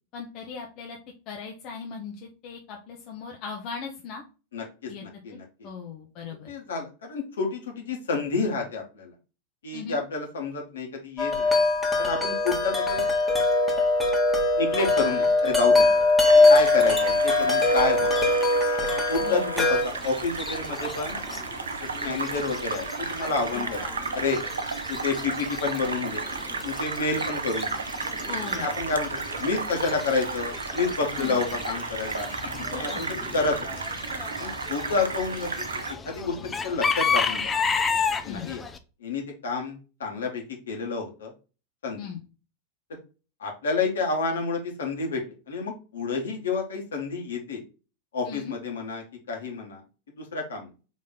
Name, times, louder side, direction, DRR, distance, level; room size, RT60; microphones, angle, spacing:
voice 1, 0.1-1.0 1.3-4.2 4.9-5.0 5.3-5.4 5.6-6.5 9.7-10.0 19.2-19.5 23.5-23.7 28.3-28.7 31.2-31.4 32.3-33.0 38.3-38.5 42.0-42.2 48.2-48.5, left 6 dB, 40° left, 1 dB, 0.9 m, -38 dB
voice 2, 4.5-5.7 6.5-9.1 9.6-11.6 12.0-13.1 14.5-16.0 16.5-18.4 19.1-21.2 21.9-23.8 24.1-24.4 24.9-26.2 26.6-27.8 28.5-32.3 32.7-33.1 33.3-33.8 34.4-37.5 38.2-38.6 39.0-41.3 41.8-42.0 43.4-47.6 48.1-49.8 50.2-50.7, left 4 dB, 65° left, 1 dB, 1.4 m, -29 dB
Wind chime, 11.2-19.8, left 2 dB, ahead, 1.4 m, -21 dB
sound 1, 16.2-35.9, right 4 dB, 70° right, 0.5 m, -33 dB
Chicken rooster / Bird, 19.6-38.8, left 5 dB, 15° left, 0.5 m, -34 dB
4.2 x 3.1 x 3.9 m, 0.32 s
figure-of-eight pair, 90°, 0 cm